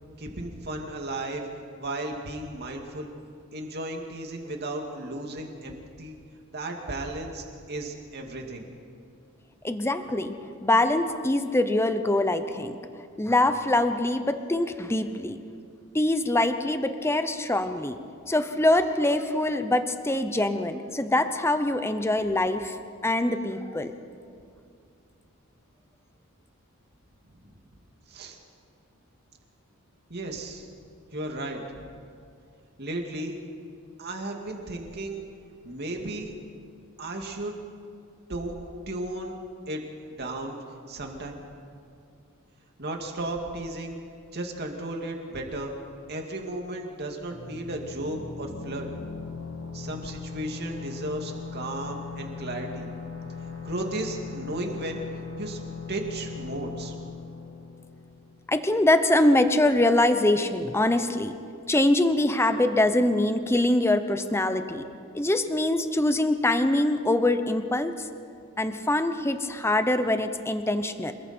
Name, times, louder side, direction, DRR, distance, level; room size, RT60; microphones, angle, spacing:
voice 1, 0.2-1.5 1.8-3.1 3.5-6.2 6.5-8.7 27.4-27.5 28.1-28.4 30.1-30.7 31.1-31.9 32.8-33.3 34.0-35.2 35.6-36.3 37.0-37.5 38.3-38.5 38.9-39.3 39.7-39.8 40.1-41.4 42.8-44.0 44.3-45.7 46.1-48.9 49.7-52.9 53.6-55.0 55.4-55.6 55.9-56.9, right 1 dB, 50° right, 2 dB, 2.5 m, -34 dB
voice 2, 9.6-12.8 13.2-15.4 15.9-18.0 18.3-22.8 23.0-23.9 58.5-61.4 61.7-64.8 65.1-68.1 68.6-71.1, left 1 dB, 10° left, 9 dB, 0.8 m, -24 dB
sound 1, 47.3-58.8, left 5 dB, 90° left, 1.9 m, -39 dB
27.5 x 21.0 x 4.5 m, 2.4 s
head